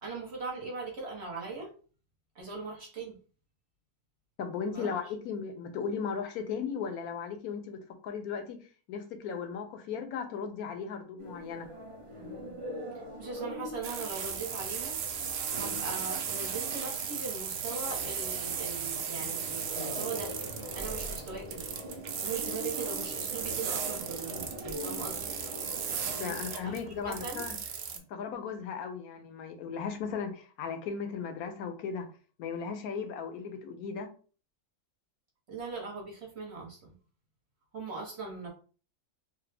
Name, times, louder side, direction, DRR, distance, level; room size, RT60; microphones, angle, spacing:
voice 1, 0.0-1.7 2.3-3.2 4.7-4.9 13.2-15.0 15.5-20.3 20.7-21.7 22.2-25.4 26.2-27.5 35.5-36.9 37.7-38.5, right 4 dB, 50° right, -1 dB, 1.0 m, -40 dB
voice 2, 4.4-8.6 8.9-11.7 26.2-27.5 28.1-32.1 32.4-34.1, left 6 dB, 75° left, 6 dB, 1.0 m, -36 dB
sound 1, 11.2-26.2, equal, 35° right, 0.5 m, -43 dB
sound 2, 13.8-28.0, right 7 dB, 80° right, 0.5 m, -36 dB
3.3 x 2.0 x 3.2 m, 0.39 s
omnidirectional pair, 1.6 m